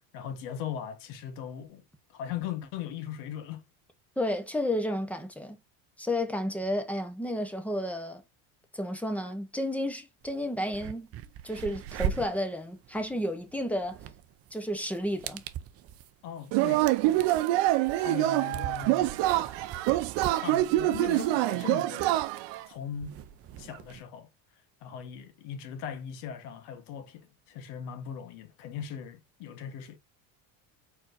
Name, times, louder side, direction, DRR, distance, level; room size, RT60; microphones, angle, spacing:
voice 1, 0.1-1.8 2.1-3.6 16.2-16.9 18.0-19.6 20.3-22.2 22.7-23.2 23.6-24.3 24.8-30.0, left 9 dB, 80° left, 1.4 m, -39 dB
voice 2, 4.2-5.6 6.0-8.2 8.7-11.1 11.4-14.0 14.5-15.4, left 1 dB, 5° left, 0.8 m, -32 dB
sound 1, 10.2-10.3 10.6-24.0, right 8 dB, 35° right, 0.5 m, -41 dB
Yell / Cheering, 16.5-22.6, right 16 dB, 65° right, 0.7 m, -26 dB
4.4 x 4.3 x 2.6 m
cardioid pair, 135°, 46 cm